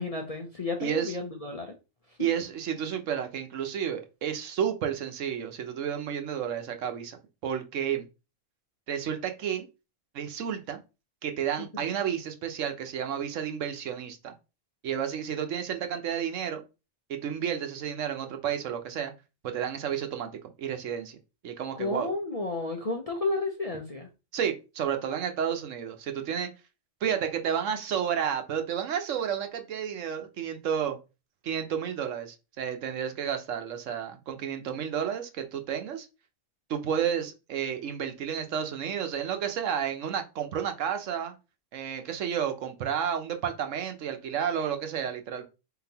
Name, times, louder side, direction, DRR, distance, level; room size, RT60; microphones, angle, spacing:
voice 1, 0.0-1.7 11.6-11.7 21.8-24.1, left 3 dB, 40° left, 0.5 m, -32 dB
voice 2, 0.8-1.1 2.2-7.2 7.4-8.1 8.9-9.7 10.1-10.8 11.2-14.3 14.8-16.6 17.1-19.1 19.4-20.3 20.6-21.2 21.4-22.1 24.3-26.5 27.0-31.0 31.4-36.1 36.7-41.3 41.7-45.4, right 8 dB, 75° right, 1.1 m, -31 dB
4.2 x 3.9 x 2.8 m
omnidirectional pair, 1.4 m